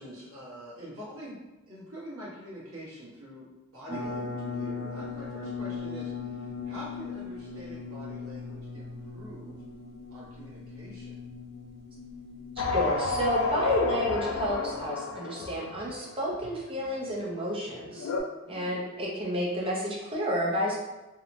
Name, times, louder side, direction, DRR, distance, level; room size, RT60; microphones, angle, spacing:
voice 1, 0.0-1.4 1.7-9.6 10.1-11.2 18.4-18.9, equal, 75° right, -7 dB, 1.0 m, -45 dB
sound 1, 3.9-14.8, left 4 dB, 45° left, 0.8 m, -39 dB
sound 2, 12.6-17.0 17.4-17.5 17.7-18.2, left 4 dB, 70° left, 0.3 m, -31 dB
voice 2, 12.7-18.1 18.5-20.7, equal, 25° right, -4 dB, 0.5 m, -30 dB
2.8 x 2.1 x 2.5 m, 1.1 s
head